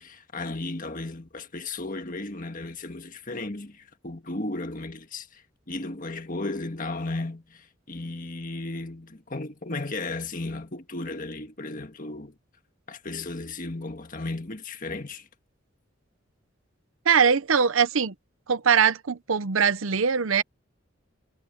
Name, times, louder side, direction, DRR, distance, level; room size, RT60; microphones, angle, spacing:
voice 1, 0.0-5.4 5.7-12.3 12.9-15.3, left 2 dB, 40° left, 1.7 m, -35 dB
voice 2, 17.1-18.1 18.5-20.4, right 6 dB, 75° right, 0.7 m, -21 dB
head